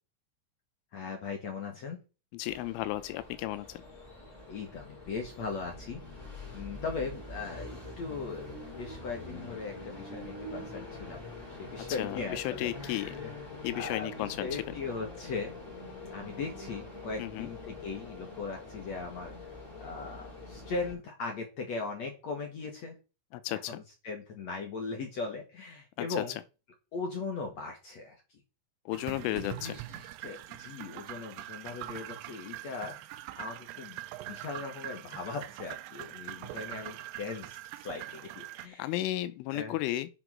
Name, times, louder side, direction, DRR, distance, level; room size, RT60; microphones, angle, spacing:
voice 1, 0.9-2.0 4.5-6.0 6.5-8.5 8.8-11.2 11.5-13.3 13.7-15.5 16.1-23.0 23.7-26.4 26.9-28.4 29.3-34.0 34.3-38.9 39.5-39.8, left 4 dB, 60° left, 1.9 m, -39 dB
voice 2, 2.3-3.8 12.0-13.1 13.6-14.5 17.2-17.5 23.3-23.8 26.0-26.2 28.9-29.7 38.8-40.1, left 15 dB, 85° left, 3.3 m, -34 dB
Train, 2.5-20.9, left 2 dB, 15° left, 4.2 m, -45 dB
sound 1, 28.9-38.7, right 16 dB, 80° right, 2.6 m, -43 dB
9.9 x 6.0 x 6.2 m
omnidirectional pair, 5.6 m